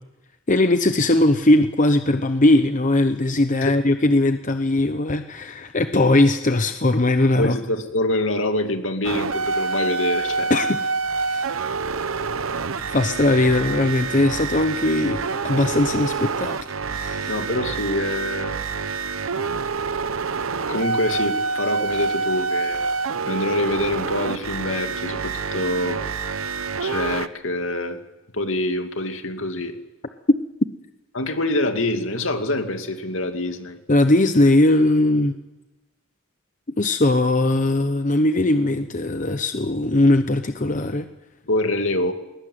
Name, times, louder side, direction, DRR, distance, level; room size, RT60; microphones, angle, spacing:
voice 1, 0.5-7.6 10.5-10.8 11.3-11.4 12.8-16.6 16.9-17.3 33.9-35.3 36.8-41.0, left 2 dB, 40° left, 8 dB, 0.9 m, -19 dB
voice 2, 7.4-10.5 17.3-18.6 20.7-22.8 23.3-26.0 26.8-28.0 28.3-29.7 31.1-33.8 41.5-42.1, left 1 dB, 70° left, 6 dB, 2.5 m, -25 dB
sound 1, 9.0-27.3, right 4 dB, 90° right, 0.9 m, -27 dB
21.0 x 19.5 x 9.5 m, 1.1 s
head